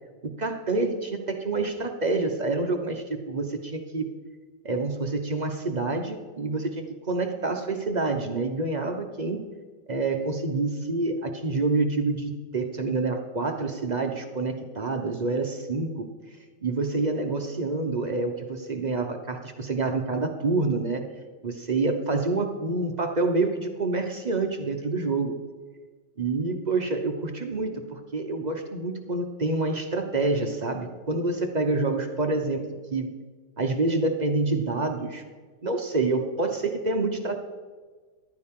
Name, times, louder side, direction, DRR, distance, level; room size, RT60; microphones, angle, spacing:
voice 1, 0.2-4.1 4.6-9.4 9.9-16.1 16.6-21.0 21.4-25.3 26.2-32.6 32.9-33.1 33.6-35.2 35.6-37.4, right 3 dB, 40° right, 5 dB, 0.6 m, -27 dB
14.0 x 12.0 x 3.7 m, 1.4 s
omnidirectional pair, 2.1 m